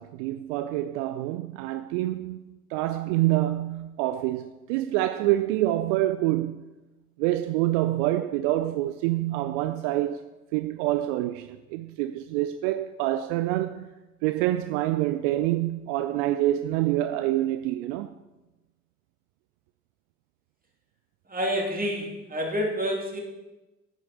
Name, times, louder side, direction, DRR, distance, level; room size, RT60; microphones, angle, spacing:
voice 1, 0.0-2.4 2.7-6.7 7.2-10.2 10.5-13.9 14.2-18.2, right 15 dB, 70° right, 0.5 m, -26 dB
voice 2, 21.3-23.2, equal, 25° right, 2.9 m, -28 dB
9.7 x 6.4 x 6.7 m
figure-of-eight pair, 40°, 38 cm